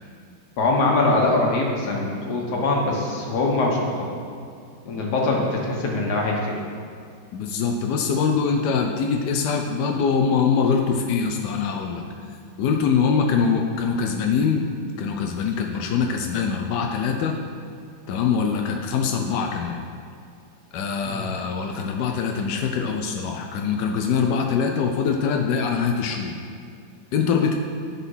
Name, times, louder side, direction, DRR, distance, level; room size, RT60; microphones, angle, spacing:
voice 1, 0.6-4.1 4.8-6.6 21.0-21.3, left 2 dB, 50° left, -1 dB, 1.6 m, -23 dB
voice 2, 7.3-12.0 12.6-14.7 15.0-17.4 18.1-19.8 20.7-26.3 27.1-27.5, left 6 dB, 80° left, 3 dB, 0.9 m, -23 dB
11.0 x 4.2 x 5.5 m, 2.4 s
omnidirectional pair, 2.4 m